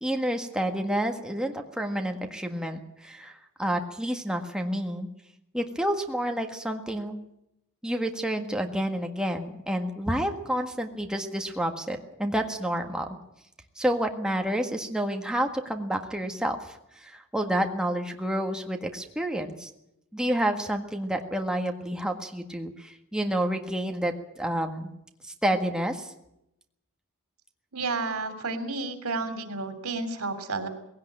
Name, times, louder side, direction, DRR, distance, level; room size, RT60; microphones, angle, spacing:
voice 1, 0.0-5.1 5.5-7.2 7.8-13.1 13.8-16.6 17.0-19.7 20.1-24.9 25.4-26.1, right 1 dB, 5° right, 4 dB, 1.6 m, -29 dB
voice 2, 27.7-30.7, right 3 dB, 85° right, 9 dB, 3.2 m, -31 dB
19.0 x 17.5 x 8.8 m, 0.82 s
head